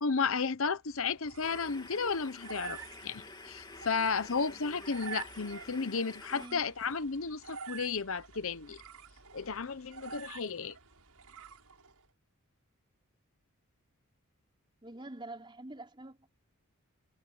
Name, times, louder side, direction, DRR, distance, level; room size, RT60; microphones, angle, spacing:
voice 1, 0.0-8.8 9.3-10.8, left 5 dB, 60° left, 0.9 m, -33 dB
sound 1, 0.9-12.1, right 6 dB, 90° right, 6.9 m, -49 dB
sound 2, 1.4-6.5, left 3 dB, 20° left, 2.9 m, -49 dB
voice 2, 6.3-6.6 14.8-16.3, right 2 dB, 20° right, 3.8 m, -46 dB
head